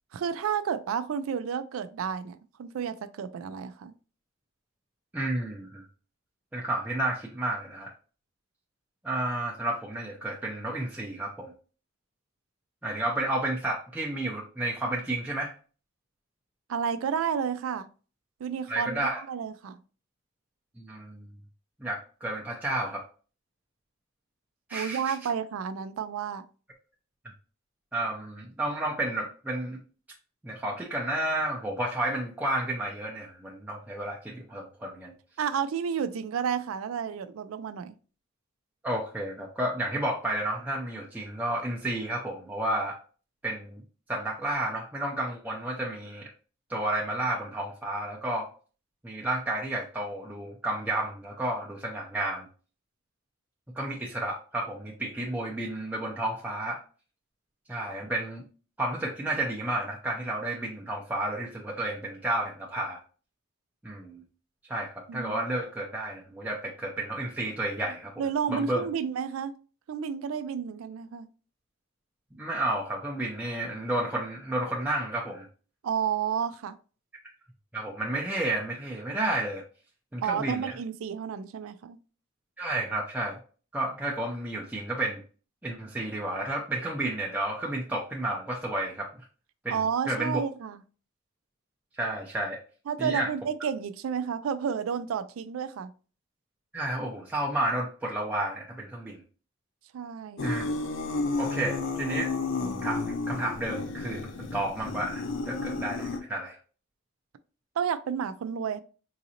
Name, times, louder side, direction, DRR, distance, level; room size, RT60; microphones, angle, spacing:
voice 1, 0.1-3.9 16.7-17.9 18.4-19.8 24.7-26.4 35.4-37.9 65.1-65.4 68.2-69.5 69.9-71.3 75.8-76.8 80.2-82.0 89.7-90.8 92.9-95.9 99.9-100.5 107.8-108.8, right 7 dB, 80° right, 0.3 m, -31 dB
voice 2, 5.1-5.8 6.5-7.9 9.0-11.5 12.8-15.5 18.7-19.2 20.8-21.3 21.8-23.0 24.7-25.1 27.9-29.8 30.4-35.1 38.8-43.0 43.4-43.8 44.1-46.3 46.7-48.5 49.0-52.5 53.8-56.8 57.7-58.4 58.8-63.0 63.8-64.2 64.7-68.1 68.5-68.8 72.3-75.5 77.7-79.6 80.1-80.8 82.6-83.4 83.7-85.2 85.6-89.1 89.6-90.4 92.0-92.6 93.0-93.3 96.7-99.2 100.4-100.7 101.4-102.3 102.7-106.6, right 1 dB, 10° right, 0.4 m, -31 dB
sound 1, 100.4-106.2, left 3 dB, 65° left, 0.5 m, -32 dB
3.9 x 2.5 x 2.8 m
head